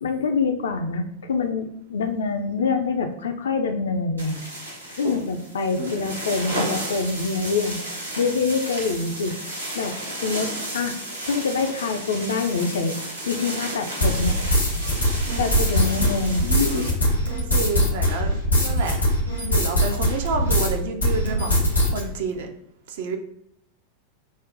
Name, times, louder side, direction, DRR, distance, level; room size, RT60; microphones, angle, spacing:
voice 1, 0.0-4.3 4.9-7.8 8.2-9.4 9.7-10.0 10.2-11.0 11.3-13.0 13.3-14.4 15.4-16.4, left 4 dB, 65° left, 6 dB, 0.4 m, -25 dB
sound 1, 4.2-16.9, equal, 80° right, 0.9 m, -32 dB
sound 2, 14.0-20.7 21.0-22.0, left 1 dB, 80° left, 0.9 m, -22 dB
voice 2, 15.2-15.6 17.3-19.0 19.4-22.5 22.9-23.2, right 5 dB, 55° right, 5 dB, 0.5 m, -29 dB
6.1 x 2.1 x 2.5 m, 0.73 s
figure-of-eight pair, 90°, 0 cm